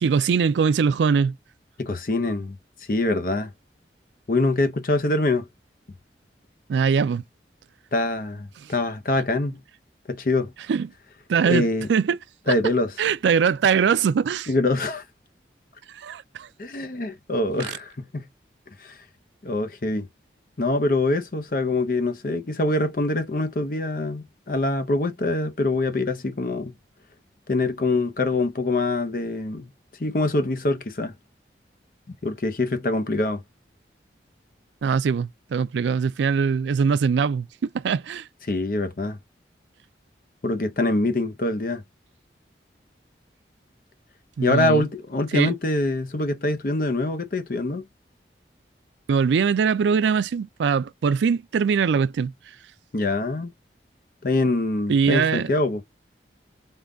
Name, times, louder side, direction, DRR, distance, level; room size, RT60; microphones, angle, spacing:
voice 1, 0.0-1.3 6.7-7.2 8.6-8.7 10.7-10.9 11.3-12.2 12.5-12.6 13.0-14.5 15.9-16.5 34.8-38.3 44.4-44.9 45.3-45.5 49.1-52.3 54.9-55.5, right 6 dB, 80° right, 0.3 m, -22 dB
voice 2, 1.8-2.6 2.9-3.5 4.3-5.5 7.9-9.6 10.1-10.5 11.4-11.9 12.5-12.9 14.5-15.0 16.6-18.3 18.8-19.0 19.4-20.1 20.6-26.7 27.5-29.7 30.0-31.1 32.2-33.4 38.5-39.2 40.4-41.8 44.4-47.8 52.9-53.5 54.2-55.8, left 2 dB, 50° left, 0.6 m, -24 dB
3.6 x 2.3 x 3.7 m
head